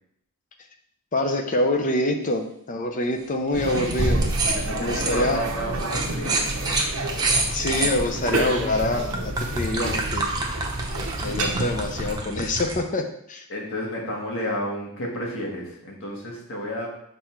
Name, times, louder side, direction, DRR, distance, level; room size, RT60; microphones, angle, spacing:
voice 1, 1.1-4.2 4.8-5.4 7.5-10.3 11.2-13.4, left 1 dB, 35° left, 5 dB, 0.6 m, -25 dB
sound 1, 3.5-12.1, right 2 dB, 75° right, 0.9 m, -29 dB
sound 2, 3.6-3.9 4.2-8.3 8.9-12.8, right 3 dB, 20° right, 0.7 m, -28 dB
voice 2, 4.5-6.8 13.5-16.9, equal, 60° left, -2 dB, 1.7 m, -31 dB
sound 3, 6.9-9.5, left 1 dB, 80° left, 0.9 m, -42 dB
5.4 x 4.2 x 4.5 m, 0.72 s
head